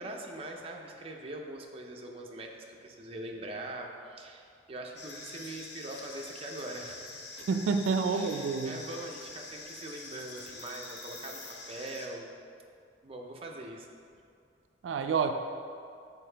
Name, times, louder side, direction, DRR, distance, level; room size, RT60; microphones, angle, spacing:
voice 1, 0.0-7.2 8.1-12.3 13.0-13.9, right 1 dB, 30° right, 1 dB, 0.5 m, -42 dB
sound 1, 5.0-12.1, left 3 dB, 65° left, 0.7 m, -45 dB
voice 2, 7.5-8.8 14.8-15.3, right 5 dB, 90° right, 7 dB, 0.3 m, -28 dB
6.7 x 4.6 x 3.3 m, 2.4 s
head